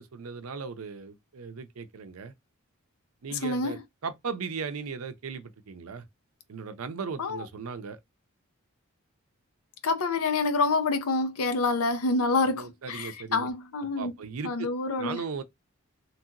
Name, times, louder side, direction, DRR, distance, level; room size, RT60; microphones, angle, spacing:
voice 1, 0.0-2.3 3.2-6.0 6.5-8.0 12.5-13.5 14.0-14.7 15.0-15.4, right 5 dB, 80° right, 0.5 m, -37 dB
voice 2, 3.3-3.8 7.2-7.4 9.8-14.1 14.4-15.2, left 3 dB, 90° left, 0.6 m, -27 dB
3.0 x 2.8 x 2.4 m
head